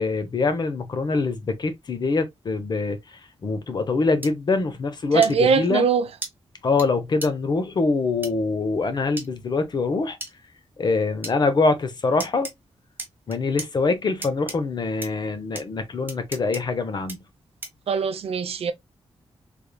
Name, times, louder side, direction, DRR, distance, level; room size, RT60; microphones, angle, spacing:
voice 1, 0.0-5.9 6.6-10.2 10.8-12.5 13.3-17.2, left 3 dB, 45° left, 0.7 m, -24 dB
sound 1, 4.2-4.3 5.2-5.3 6.2-6.3 6.8-6.9 7.2-7.3 8.2-8.3 9.2-9.3 10.2-10.3 11.2-11.4 12.2-12.5 13.0-13.7 14.2-14.6 15.0-15.1 15.6-15.7 16.1-16.6 17.1-17.2 17.6-17.8, right 2 dB, 20° right, 0.9 m, -34 dB
voice 2, 5.1-6.1 17.9-18.7, right 6 dB, 70° right, 0.5 m, -21 dB
3.4 x 3.3 x 2.2 m
wide cardioid pair, 155°, 11 cm